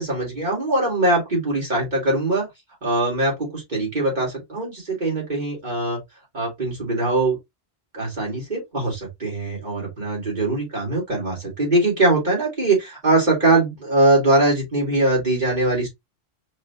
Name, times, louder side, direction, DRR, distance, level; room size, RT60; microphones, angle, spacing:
voice 1, 0.0-2.5 2.8-6.0 6.3-7.4 7.9-15.9, right 2 dB, 45° right, 2.6 m, -22 dB
4.7 x 2.7 x 2.9 m
omnidirectional pair, 1.1 m